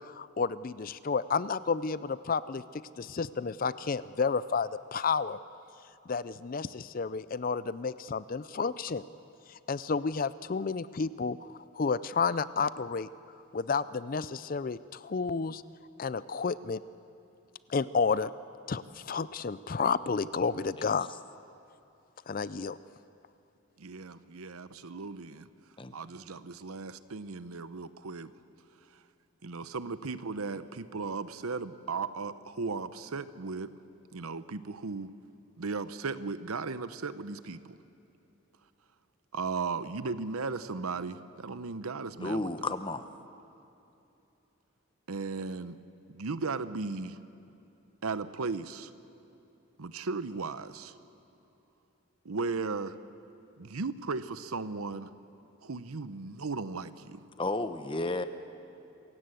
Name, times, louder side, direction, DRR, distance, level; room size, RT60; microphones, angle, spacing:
voice 1, 0.0-5.4 6.1-9.0 9.5-13.1 13.5-15.6 16.0-16.8 17.7-18.3 18.7-21.1 22.3-22.8, left 5 dB, 40° left, 16 dB, 0.4 m, -31 dB
voice 2, 23.8-25.5 25.9-28.3 29.4-33.7 34.1-35.1 35.6-37.8 39.3-42.7 45.1-45.8 46.1-47.2 48.0-48.9 49.8-50.9 52.2-53.0 53.6-55.1 55.6-57.2, right 4 dB, 90° right, 13 dB, 0.8 m, -36 dB
voice 3, 42.2-43.1 57.4-58.2, left 2 dB, 25° left, 10 dB, 0.8 m, -32 dB
26.0 x 16.5 x 7.8 m, 2.8 s
head